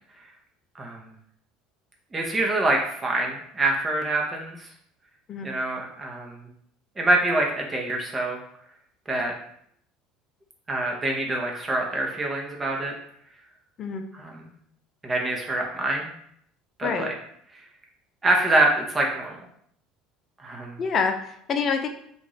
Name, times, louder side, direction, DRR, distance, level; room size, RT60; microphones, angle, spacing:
voice 1, 0.7-1.1 2.1-4.7 5.4-6.5 7.0-8.4 9.1-9.3 10.7-12.9 14.1-14.4 15.0-16.1 16.8-17.1 18.2-19.4 20.4-20.8, right 2 dB, 20° right, 0 dB, 1.0 m, -25 dB
voice 2, 16.8-17.1 20.8-21.9, left 5 dB, 40° left, 7 dB, 0.5 m, -26 dB
2.9 x 2.6 x 3.9 m, 0.68 s
figure-of-eight pair, 65°, 0 cm